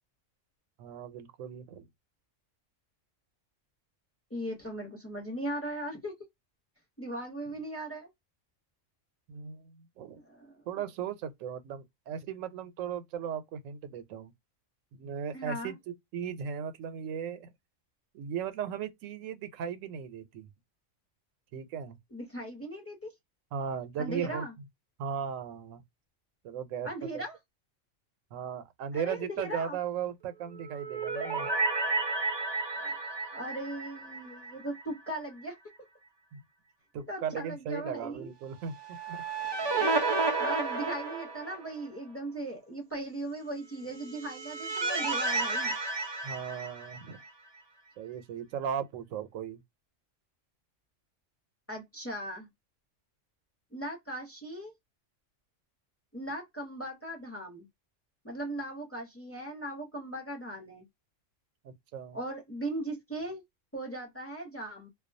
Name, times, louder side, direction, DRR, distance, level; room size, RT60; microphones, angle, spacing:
voice 1, 0.8-1.8 9.3-10.2 10.7-14.3 14.9-15.8 16.1-17.5 18.1-20.5 21.5-22.0 23.5-24.5 25.0-25.8 26.4-27.2 28.3-31.5 36.3-36.4 36.9-39.2 39.7-39.9 46.2-47.2 48.0-49.6 61.6-62.2, right 7 dB, 90° right, 1.0 m, -37 dB
voice 2, 4.3-6.2 7.0-8.1 10.1-10.6 15.3-15.8 22.1-23.1 24.0-24.5 26.8-27.4 28.9-29.8 32.8-32.9 33.3-35.6 37.1-38.3 40.4-45.8 51.7-52.5 53.7-54.7 56.1-57.7 58.2-60.9 62.1-63.4 63.7-64.9, right 1 dB, 15° left, 0.7 m, -38 dB
sound 1, 30.5-34.8 35.1-35.2 38.7-41.8 43.9-47.3, right 3 dB, 30° right, 0.5 m, -32 dB
2.3 x 2.2 x 2.5 m
omnidirectional pair, 1.3 m